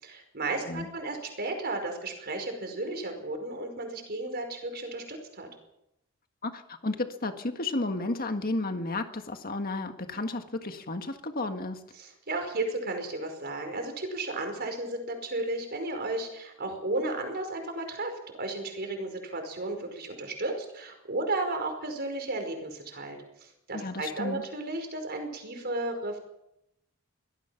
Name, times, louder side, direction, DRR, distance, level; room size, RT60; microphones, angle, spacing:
voice 1, 0.0-5.5 12.0-26.2, right 2 dB, 50° right, 5 dB, 5.2 m, -34 dB
voice 2, 6.4-11.8 23.7-24.4, left 2 dB, 45° left, 6 dB, 1.8 m, -32 dB
24.0 x 18.0 x 6.0 m, 0.83 s
head